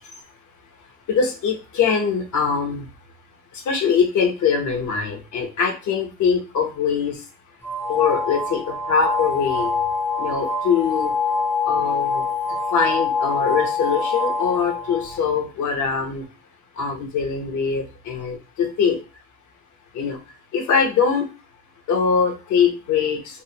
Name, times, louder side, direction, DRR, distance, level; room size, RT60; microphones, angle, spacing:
voice 1, 1.1-2.8 3.7-7.2 7.9-8.6 8.9-9.7 10.2-11.1 11.7-12.2 12.7-16.2 16.8-19.0 19.9-20.2 20.5-21.3 21.9-23.2, left 6 dB, 75° left, 3 dB, 0.9 m, -22 dB
sound 1, 7.6-15.2, left 4 dB, 5° left, 0.4 m, -25 dB
2.7 x 2.5 x 2.8 m, 0.31 s
cardioid pair, 90°, 30 cm